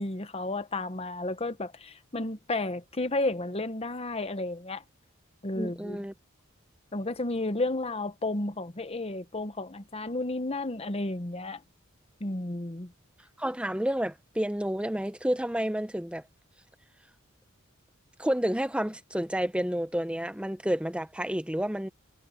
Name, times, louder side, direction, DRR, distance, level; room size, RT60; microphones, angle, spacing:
voice 1, 0.0-4.8 5.4-6.0 6.9-11.6 12.2-12.9, left 2 dB, 30° left, 1.1 m, -32 dB
voice 2, 5.5-6.1 13.4-16.2 18.2-21.9, equal, 5° right, 0.9 m, -30 dB
head